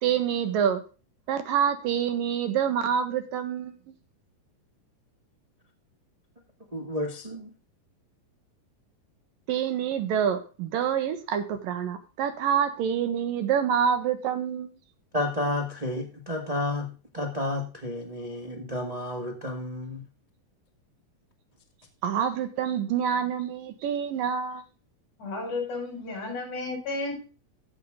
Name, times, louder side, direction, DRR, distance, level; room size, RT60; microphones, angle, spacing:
voice 1, 0.0-0.8 1.3-3.8 9.5-14.7 22.0-24.6, right 8 dB, 85° right, 3.1 m, -27 dB
voice 2, 6.7-7.5 15.1-20.1, left 1 dB, 25° right, 0.7 m, -31 dB
voice 3, 25.2-27.2, left 3 dB, 65° left, 6.4 m, -32 dB
15.0 x 6.7 x 3.6 m
omnidirectional pair, 3.9 m